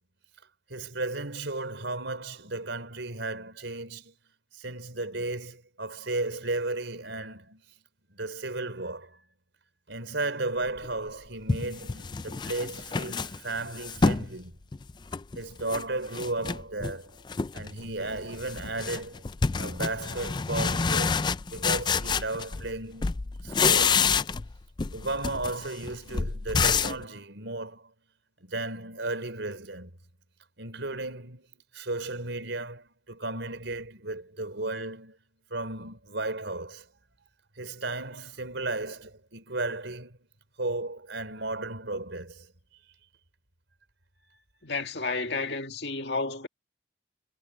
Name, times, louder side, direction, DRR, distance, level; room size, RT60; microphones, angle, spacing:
voice 1, 0.7-4.2 4.5-7.6 8.1-9.2 9.9-14.6 15.3-17.1 17.5-19.2 19.6-24.2 24.9-27.9 28.4-29.9 30.6-35.2 35.5-36.9 37.6-40.2 40.6-42.5 44.3-44.4, right 2 dB, 80° right, 4.1 m, -34 dB
sound 1, 10.8-10.9 11.5-14.3 14.7-15.8 16.1-17.0 17.3-17.7 18.0-22.7 23.0-24.5 24.8-27.0, left 5 dB, 25° left, 0.3 m, -28 dB
voice 2, 44.6-46.5, left 3 dB, 65° left, 2.0 m, -31 dB
head